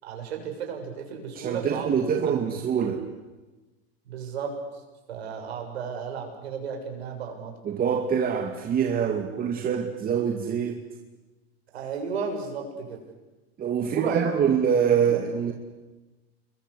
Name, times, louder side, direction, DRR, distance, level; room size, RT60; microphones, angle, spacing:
voice 1, 0.0-1.9 2.2-2.3 4.1-4.5 5.1-7.5 11.7-13.0 13.9-14.3 15.0-15.2, right 6 dB, 85° right, 3 dB, 6.9 m, -33 dB
voice 2, 1.4-3.0 7.6-10.8 13.6-15.5, right 7 dB, 30° right, 4 dB, 2.3 m, -25 dB
29.0 x 22.0 x 8.3 m, 1.2 s
hypercardioid pair, 120°, 31 cm